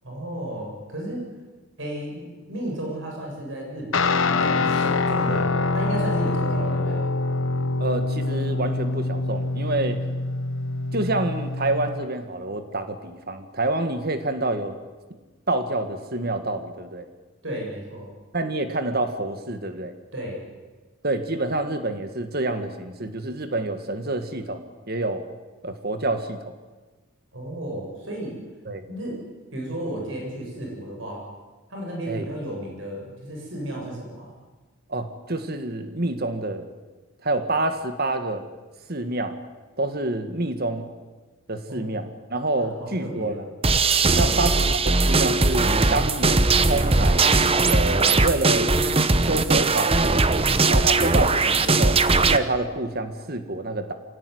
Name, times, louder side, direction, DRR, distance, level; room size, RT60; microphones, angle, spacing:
voice 1, 0.0-1.3 1.8-7.0 17.4-18.1 20.1-20.4 27.3-28.3 28.9-29.2 29.5-31.2 31.7-34.3 41.7-41.8 42.6-43.4 44.2-44.3, right 1 dB, 65° right, -1 dB, 7.5 m, -33 dB
Guitar, 3.9-12.1, left 3 dB, 70° left, 1.2 m, -25 dB
voice 2, 7.8-10.0 10.9-14.8 15.5-17.1 18.3-20.0 21.0-25.2 25.6-26.5 28.7-28.9 32.1-32.3 34.9-36.7 37.2-38.5 38.9-39.4 39.8-40.9 41.5-43.3 44.2-47.3 47.7-48.8 49.1-50.0 50.6-53.9, right 2 dB, 50° right, 8 dB, 2.0 m, -27 dB
sound 1, 43.6-52.4, right 3 dB, 30° right, 0.9 m, -19 dB
25.5 x 17.0 x 9.6 m, 1.3 s
head